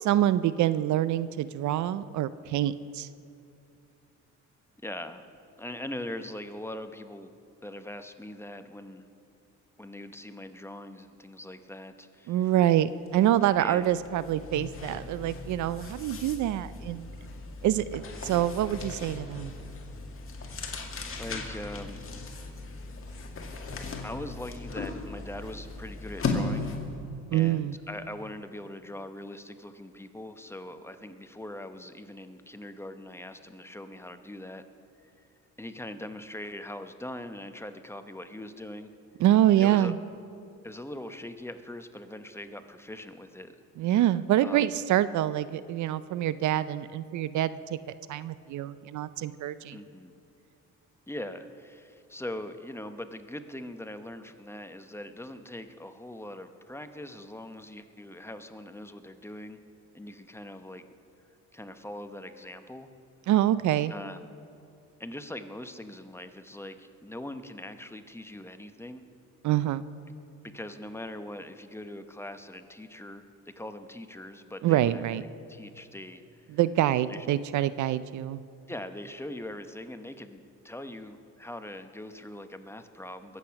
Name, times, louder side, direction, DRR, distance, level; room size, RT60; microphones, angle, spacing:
voice 1, 0.0-3.1 12.3-17.1 17.6-19.5 27.3-27.7 39.2-40.0 43.8-47.8 48.1-49.8 63.3-63.9 69.4-69.8 74.6-75.2 76.5-78.4, right 12 dB, 70° right, 16 dB, 0.5 m, -26 dB
voice 2, 4.8-5.3 5.6-7.3 7.6-9.1 9.8-12.5 13.6-13.9 18.2-18.4 21.2-22.0 24.0-26.7 27.3-34.6 35.0-35.3 35.6-38.9 39.6-39.9 40.6-43.6 44.4-44.7 49.7-50.1 51.1-59.6 59.9-60.8 61.5-62.9 63.9-64.2 65.0-69.0 70.4-73.3 73.6-75.0 75.5-76.6 77.1-77.3 78.7-83.4, left 1 dB, 10° left, 8 dB, 0.9 m, -41 dB
sound 1, 13.1-13.2 13.6-27.0, left 3 dB, 45° left, 1.9 m, -37 dB
22.0 x 8.4 x 5.9 m, 2.6 s
cardioid pair, 90°, 30 cm